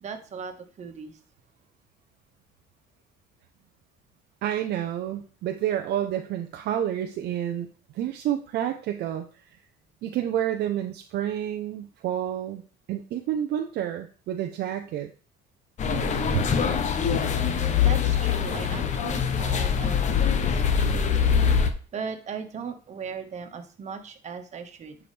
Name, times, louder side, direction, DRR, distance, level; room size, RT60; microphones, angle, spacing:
voice 1, 0.0-1.1 17.8-21.5 21.9-25.0, right 6 dB, 35° right, 5 dB, 1.5 m, -38 dB
voice 2, 4.4-7.7 7.9-9.2 10.0-12.6 12.9-15.1 16.3-16.4, right 11 dB, 60° right, 5 dB, 0.7 m, -29 dB
sound 1, 15.8-21.7, left 7 dB, 40° left, 0.9 m, -23 dB
11.0 x 4.9 x 3.4 m, 0.38 s
cardioid pair, 125°, 19 cm